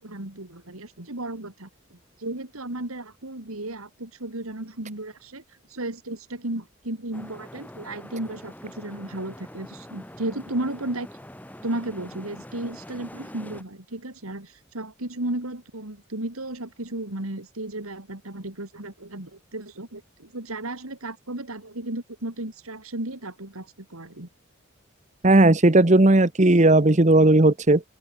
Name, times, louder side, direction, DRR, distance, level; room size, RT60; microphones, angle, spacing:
voice 1, 0.0-5.4 5.7-11.1 11.6-24.3, right 1 dB, 85° right, 3.3 m, -34 dB
sound 1, 7.1-13.6, equal, 5° left, 4.3 m, -44 dB
voice 2, 25.2-27.8, right 2 dB, 35° right, 1.1 m, -16 dB
open air
head